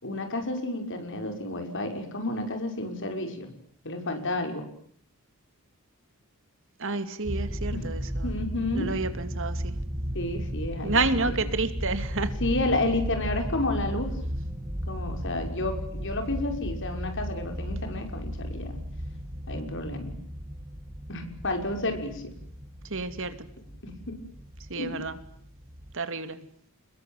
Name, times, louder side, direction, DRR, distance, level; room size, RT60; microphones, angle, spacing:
voice 1, 0.0-3.5 3.8-4.7 7.7-7.9 8.2-8.9 10.1-11.4 12.4-14.1 14.9-18.8 19.5-20.2 21.1-22.3 23.8-24.2 24.8-25.0, left 2 dB, 55° left, 6.1 m, -31 dB
voice 2, 6.8-8.3 8.7-9.7 10.8-12.4 22.9-23.5 24.7-25.2 25.9-26.4, right 3 dB, 60° right, 2.6 m, -30 dB
sound 1, 7.2-26.0, equal, 20° right, 1.8 m, -35 dB
28.0 x 22.0 x 9.2 m
head